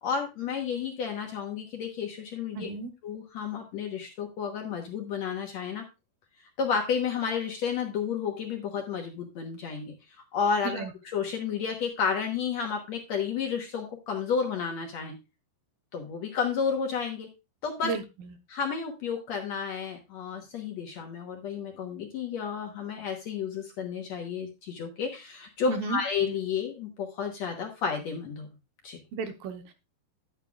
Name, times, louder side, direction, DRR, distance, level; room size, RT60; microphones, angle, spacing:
voice 1, 0.0-2.7 3.0-5.8 6.6-9.9 10.3-15.2 15.9-17.3 17.6-17.9 18.5-28.5 28.8-29.0, left 6 dB, 60° left, 3 dB, 2.0 m, -31 dB
voice 2, 2.6-2.9 10.6-10.9 17.8-18.3 25.7-26.0 29.1-29.7, right 4 dB, 75° right, 6 dB, 2.7 m, -33 dB
11.0 x 9.0 x 2.4 m, 0.25 s
omnidirectional pair, 4.2 m